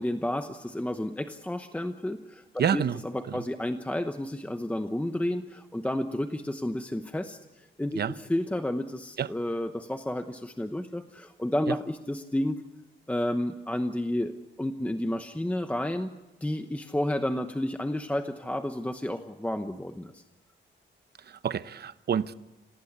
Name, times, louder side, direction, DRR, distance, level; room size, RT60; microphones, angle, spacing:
voice 1, 0.0-2.4 2.7-2.8 3.3-7.4 7.8-12.6 13.1-14.3 14.6-16.1 16.4-20.2, left 1 dB, 5° left, 1.0 m, -31 dB
voice 2, 2.6-3.4 7.9-8.1 9.2-9.3 11.7-11.8 21.2-22.3, right 8 dB, 55° right, 0.8 m, -29 dB
28.0 x 18.0 x 8.2 m
wide cardioid pair, 140°, 20 cm